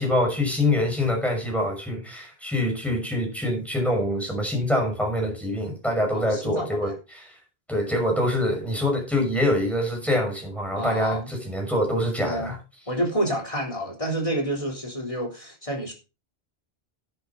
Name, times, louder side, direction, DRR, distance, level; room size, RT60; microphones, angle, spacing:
voice 1, 0.0-7.4 7.7-12.6, left 1 dB, ahead, 5.8 m, -25 dB
voice 2, 6.1-6.9 10.7-11.3 12.2-12.5 12.9-15.9, right 1 dB, 30° left, 3.7 m, -29 dB
11.5 x 9.9 x 3.9 m
omnidirectional pair, 1.0 m